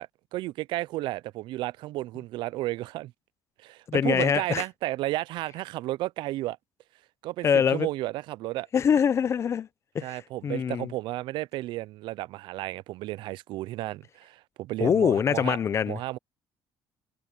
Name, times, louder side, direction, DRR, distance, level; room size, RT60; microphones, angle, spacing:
voice 1, 0.0-3.1 3.6-6.6 7.2-8.7 10.0-15.6 15.9-16.2, right 17 dB, 75° right, 0.4 m, -33 dB
voice 2, 3.9-4.6 7.4-7.9 8.7-9.7 9.9-10.9 14.8-16.0, left 7 dB, 35° left, 0.6 m, -24 dB
cardioid pair, 140°, 8 cm